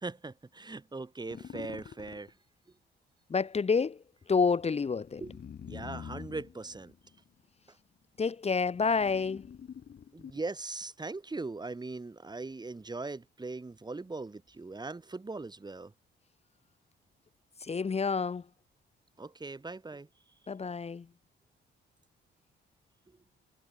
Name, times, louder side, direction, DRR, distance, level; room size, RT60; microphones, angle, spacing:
voice 1, 0.0-2.3 5.2-5.3 5.6-6.9 10.1-15.9 19.2-20.1, right 3 dB, 20° right, 3.1 m, -40 dB
sound 1, 1.3-2.3 4.7-7.5 8.2-10.6, left 8 dB, 55° left, 6.0 m, -47 dB
voice 2, 3.3-5.2 8.2-9.5 17.6-18.4 20.5-21.1, left 5 dB, 30° left, 1.5 m, -29 dB
cardioid pair, 90°, 20 cm